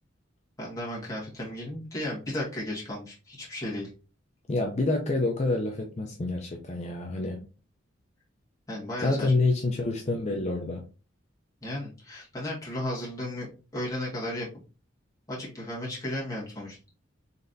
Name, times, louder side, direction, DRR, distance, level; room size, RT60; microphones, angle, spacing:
voice 1, 0.6-3.9 8.7-9.3 11.6-13.5 13.7-14.5 15.3-16.8, left 1 dB, 15° left, -5 dB, 1.6 m, -34 dB
voice 2, 4.5-7.4 9.0-10.8, left 2 dB, 35° left, 1 dB, 0.5 m, -27 dB
4.0 x 3.3 x 2.6 m, 0.34 s
head